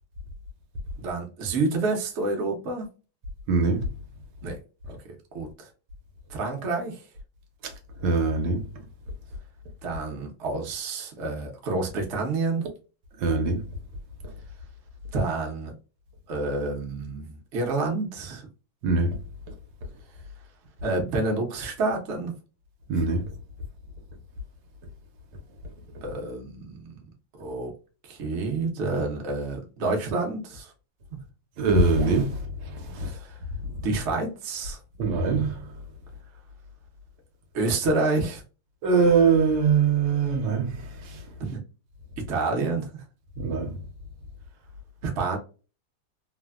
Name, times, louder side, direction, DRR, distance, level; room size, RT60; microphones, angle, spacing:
voice 1, 1.0-2.9 4.4-4.6 4.9-5.0 5.3-5.7 6.3-7.0 9.8-12.6 15.1-15.7 16.3-18.5 20.8-22.3 26.0-26.8 27.4-27.7 28.1-30.7 32.9-33.4 33.8-34.8 37.5-38.4 41.4-41.6 42.3-43.0 45.0-45.4, right 3 dB, 55° right, 0.8 m, -28 dB
voice 2, 3.5-3.9 7.6-7.7 8.0-8.7 13.2-13.7 18.8-19.2 22.9-23.3 31.6-33.1 35.0-35.7 38.8-41.2 43.4-43.7, right 4 dB, 75° right, 1.3 m, -23 dB
3.3 x 2.1 x 2.2 m
omnidirectional pair, 2.1 m